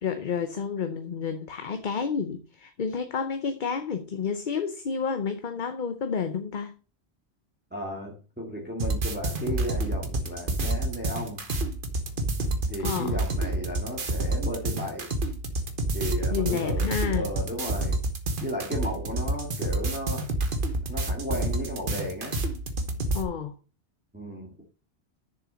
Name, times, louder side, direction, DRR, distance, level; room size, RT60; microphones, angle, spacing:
voice 1, 0.0-6.7 12.8-13.2 16.3-17.3 23.1-23.5, left 6 dB, 50° left, 0.9 m, -30 dB
voice 2, 7.7-11.4 12.7-15.1 15.9-18.0 18.4-20.2 20.9-22.4 24.1-24.5, equal, 10° right, 2.1 m, -34 dB
sound 1, 8.8-23.2, right 2 dB, 50° right, 1.3 m, -29 dB
6.9 x 6.8 x 6.4 m
omnidirectional pair, 1.1 m